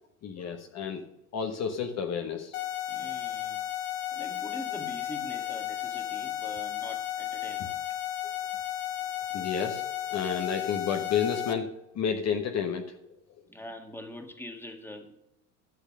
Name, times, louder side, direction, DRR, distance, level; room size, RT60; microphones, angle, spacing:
voice 1, 0.2-1.0 1.3-2.5 9.3-9.8 10.1-11.7 11.9-12.8, left 7 dB, 45° left, 5 dB, 1.2 m, -30 dB
sound 1, 2.5-11.5, left 11 dB, 75° left, 1.1 m, -34 dB
voice 2, 2.9-3.6 4.1-7.8 13.5-15.1, left 1 dB, 5° left, 4 dB, 1.7 m, -43 dB
12.0 x 6.5 x 6.3 m, 0.88 s
hypercardioid pair, 85°, 37 cm